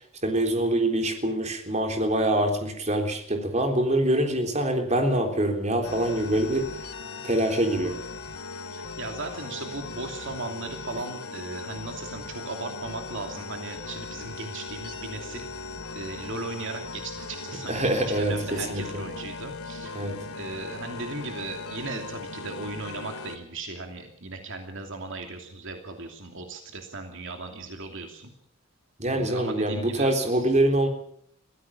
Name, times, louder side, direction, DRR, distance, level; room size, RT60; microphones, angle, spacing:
voice 1, 0.2-6.9 7.2-8.0 17.7-19.0 20.0-20.2 29.0-30.9, right 1 dB, 30° right, 4 dB, 3.7 m, -25 dB
sound 1, 5.8-23.4, left 3 dB, 75° left, 2.6 m, -38 dB
voice 2, 8.7-15.5 15.9-28.3 29.1-30.5, right 3 dB, 60° right, 4 dB, 2.8 m, -37 dB
23.0 x 16.0 x 7.3 m, 0.67 s
head